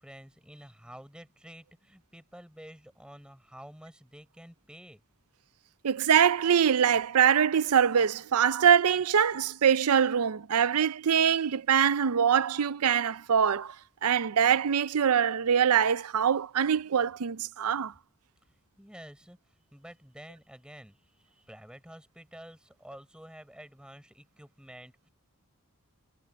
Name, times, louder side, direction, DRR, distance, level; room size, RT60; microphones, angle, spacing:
voice 1, 0.0-5.0 18.8-19.4 19.7-25.1, equal, 5° right, 6.2 m, -50 dB
voice 2, 5.8-13.7 14.0-17.9, right 8 dB, 85° right, 0.5 m, -24 dB
head